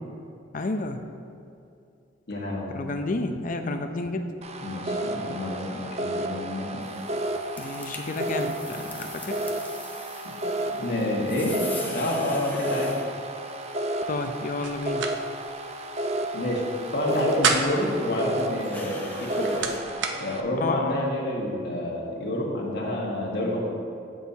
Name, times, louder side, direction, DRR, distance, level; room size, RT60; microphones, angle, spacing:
voice 1, 0.5-1.0 2.7-4.3 7.6-9.5 14.1-15.1 20.6-21.0, left 2 dB, 45° left, 6 dB, 0.5 m, -31 dB
voice 2, 2.3-2.8 4.6-6.8 10.8-11.5 11.8-12.9 16.3-16.6 16.9-19.7 20.1-23.6, left 1 dB, 60° left, -3 dB, 1.6 m, -28 dB
sound 1, 4.4-20.4, right 1 dB, 35° right, 0.5 m, -32 dB
sound 2, 6.8-19.8, left 2 dB, 10° left, 0.8 m, -44 dB
sound 3, 14.6-15.2 15.5-15.6 17.0-17.9 19.0-20.2, right 5 dB, 70° right, 0.7 m, -28 dB
15.0 x 6.4 x 2.8 m, 2.6 s
head